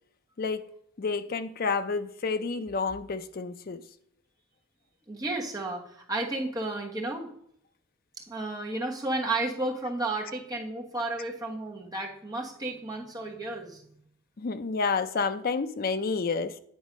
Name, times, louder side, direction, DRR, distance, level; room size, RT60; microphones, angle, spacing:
voice 1, 1.0-3.8 14.4-16.6, left 4 dB, 45° left, 0.5 m, -29 dB
voice 2, 5.1-7.3 8.3-14.0, right 2 dB, 20° right, 1.2 m, -32 dB
9.2 x 4.0 x 5.2 m
head